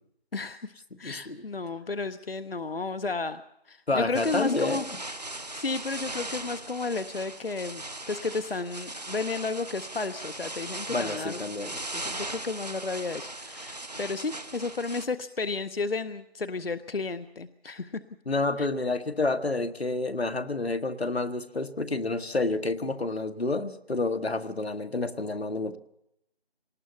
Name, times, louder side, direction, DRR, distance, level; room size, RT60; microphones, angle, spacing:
voice 1, 0.3-0.7 1.0-4.8 5.3-11.4 11.9-18.0 18.6-18.7, left 3 dB, 70° left, 11 dB, 0.8 m, -33 dB
voice 2, 1.0-1.4 3.9-4.8 10.9-11.8 18.3-25.8, left 2 dB, 85° left, 8 dB, 1.4 m, -29 dB
sound 1, 4.1-15.1, right 2 dB, 40° right, 0.8 m, -39 dB
20.5 x 18.5 x 7.0 m, 0.80 s
figure-of-eight pair, 170°, 31 cm